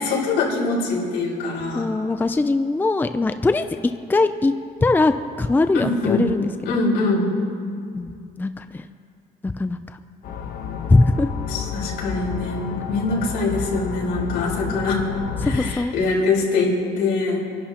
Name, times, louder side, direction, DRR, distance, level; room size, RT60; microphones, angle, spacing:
voice 1, 0.0-1.9 5.7-6.3 6.6-7.3 11.5-15.0 15.4-17.4, left 3 dB, 85° left, -3 dB, 4.3 m, -23 dB
voice 2, 1.7-3.6 4.1-4.5 4.8-6.5 7.9-8.8 9.4-9.8 10.9-11.3 15.4-15.9, left 3 dB, 10° left, 9 dB, 0.5 m, -20 dB
sound 1, 10.2-15.7, left 6 dB, 60° left, 1.1 m, -31 dB
27.5 x 11.5 x 2.9 m, 2.3 s
cardioid pair, 110°, 17 cm